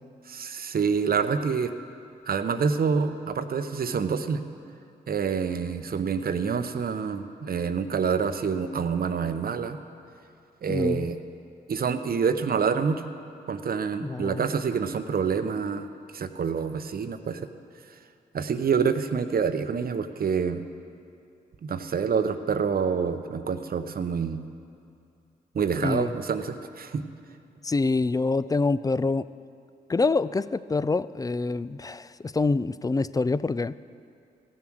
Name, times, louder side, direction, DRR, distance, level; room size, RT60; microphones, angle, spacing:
voice 1, 0.3-1.7 2.3-4.4 5.1-9.8 10.6-11.2 11.7-13.1 13.5-15.9 16.1-17.4 18.3-20.6 21.6-24.4 25.5-27.0, right 6 dB, 55° right, 10 dB, 0.7 m, -27 dB
voice 2, 10.7-11.1 14.0-14.5 25.8-26.1 27.6-29.3 29.9-33.7, left 3 dB, 20° left, 17 dB, 0.3 m, -26 dB
15.0 x 7.3 x 6.2 m, 2.4 s
supercardioid pair, 50°, 19 cm